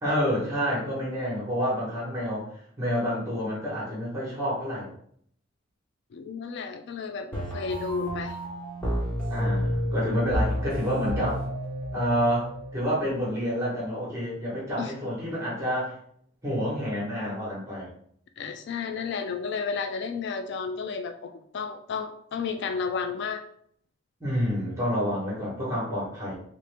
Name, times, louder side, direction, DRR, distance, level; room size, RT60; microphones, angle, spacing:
voice 1, 0.0-4.9 9.3-11.4 11.9-15.9 16.4-17.9 24.2-26.3, equal, 15° right, -7 dB, 1.2 m, -28 dB
voice 2, 6.1-8.4 14.8-14.9 18.4-23.4, left 5 dB, 60° left, 8 dB, 0.3 m, -32 dB
sound 1, 7.3-13.3, equal, 10° left, 1.4 m, -30 dB
3.1 x 2.9 x 3.3 m, 0.65 s
head